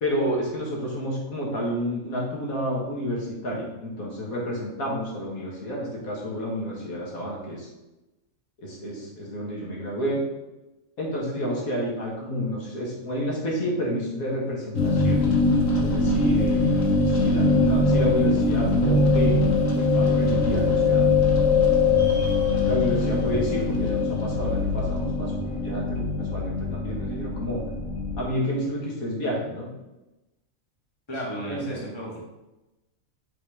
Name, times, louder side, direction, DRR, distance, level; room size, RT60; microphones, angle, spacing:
voice 1, 0.0-7.7 8.6-10.2 11.0-15.2 15.8-19.4 19.6-21.1 22.7-27.6 28.2-29.7 31.5-31.8, equal, 90° left, -4 dB, 2.1 m, -30 dB
sound 1, 14.7-28.2, left 3 dB, 70° left, 1.5 m, -22 dB
voice 2, 31.1-32.2, equal, 20° left, -5 dB, 1.8 m, -34 dB
6.0 x 3.8 x 4.9 m, 1.0 s
omnidirectional pair, 1.4 m